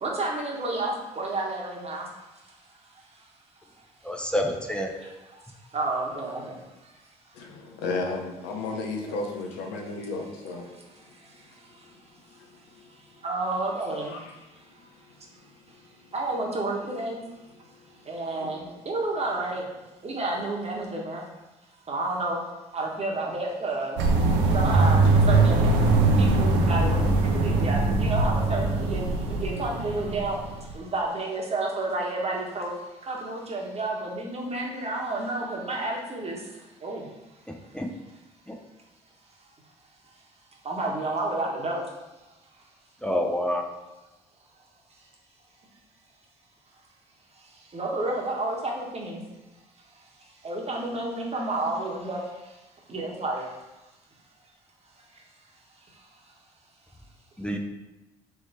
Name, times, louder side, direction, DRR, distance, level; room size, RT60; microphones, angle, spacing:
voice 1, 0.0-2.1 4.6-4.7 5.0-5.1 5.7-6.5 9.1-9.2 13.2-14.2 16.1-17.2 18.1-19.6 20.0-21.3 21.9-22.4 22.7-24.0 24.4-25.6 26.2-30.4 30.7-32.7 33.1-36.4 36.8-37.0 40.6-41.8 47.7-49.2 50.4-52.2 52.9-53.5, right 2 dB, 35° right, -1 dB, 1.2 m, -30 dB
voice 2, 4.0-4.9 37.7-37.9 38.5-38.6 43.0-43.6 57.4-57.6, left 1 dB, 5° left, 2 dB, 0.6 m, -27 dB
voice 3, 7.3-10.7 13.9-14.2 18.4-18.6, left 3 dB, 80° left, 2 dB, 0.7 m, -33 dB
sound 1, 24.0-30.7, right 3 dB, 80° right, 0.6 m, -22 dB
3.5 x 3.1 x 4.1 m, 1.0 s
hypercardioid pair, 55°, 17 cm